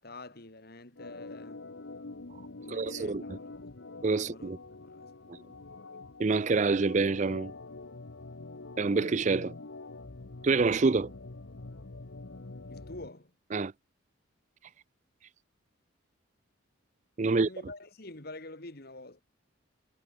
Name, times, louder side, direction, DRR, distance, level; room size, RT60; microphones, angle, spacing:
voice 1, 0.0-1.6 2.6-3.8 4.2-5.2 12.7-13.3 17.2-19.2, left 2 dB, 50° left, 2.2 m, -47 dB
Organ, 1.0-13.1, left 3 dB, 65° left, 1.1 m, -46 dB
voice 2, 2.7-3.4 4.0-4.6 5.3-5.4 6.2-7.5 8.8-9.5 10.4-11.1 13.5-13.7 17.2-17.5, right 4 dB, 35° right, 0.4 m, -27 dB
head